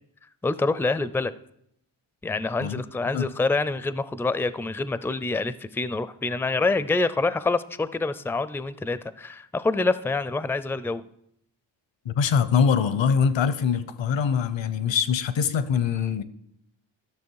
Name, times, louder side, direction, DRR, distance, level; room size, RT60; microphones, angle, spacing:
voice 1, 0.4-1.3 2.2-11.0, left 3 dB, 5° left, 0.4 m, -26 dB
voice 2, 12.0-16.2, left 7 dB, 75° left, 0.9 m, -23 dB
12.5 x 6.5 x 4.7 m
cardioid pair, 65°, 46 cm